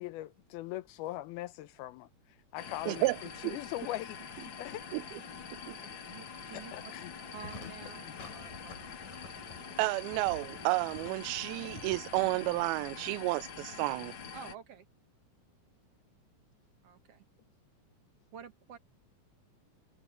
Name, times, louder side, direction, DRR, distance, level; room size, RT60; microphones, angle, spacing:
voice 1, 0.0-4.8 6.5-7.1 7.8-7.9, left 15 dB, 85° left, 2.7 m, -41 dB
sound 1, 2.6-14.5, left 6 dB, 45° left, 1.7 m, -45 dB
voice 2, 5.7-6.7 7.3-9.0 14.3-14.9 16.8-17.2 18.3-18.8, right 9 dB, 60° right, 1.7 m, -50 dB
sound 2, 7.3-13.0, left 4 dB, 65° left, 6.6 m, -51 dB
voice 3, 9.8-14.1, right 22 dB, 85° right, 2.4 m, -31 dB
omnidirectional pair, 4.3 m